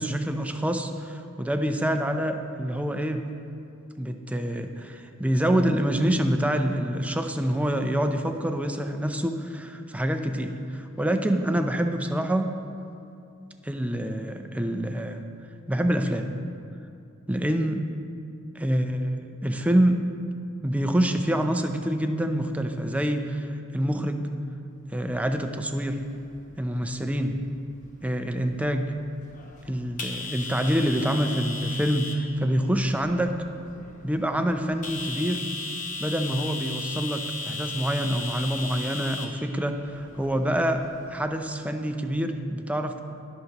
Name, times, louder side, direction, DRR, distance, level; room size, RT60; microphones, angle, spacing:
voice 1, 0.0-3.2 4.0-12.5 13.6-15.3 15.7-16.3 17.3-17.9 18.5-20.0 20.6-24.3 24.9-26.0 26.6-27.4 28.0-28.9 29.7-33.3 34.0-35.5 36.0-43.0, equal, 5° right, 6 dB, 0.4 m, -26 dB
sound 1, 25.0-41.1, left 3 dB, 40° left, 0.9 m, -38 dB
18.5 x 6.5 x 2.9 m, 2.5 s
head